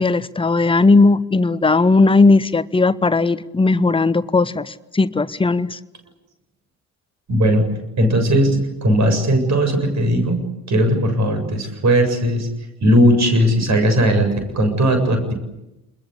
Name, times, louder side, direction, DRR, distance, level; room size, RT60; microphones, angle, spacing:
voice 1, 0.0-5.8, left 3 dB, 10° left, 15 dB, 1.1 m, -16 dB
voice 2, 7.3-7.6 8.0-10.4 10.7-12.5 12.8-15.3, equal, 40° right, 6 dB, 7.7 m, -17 dB
28.5 x 21.5 x 8.3 m, 0.95 s
figure-of-eight pair, 50°, 43 cm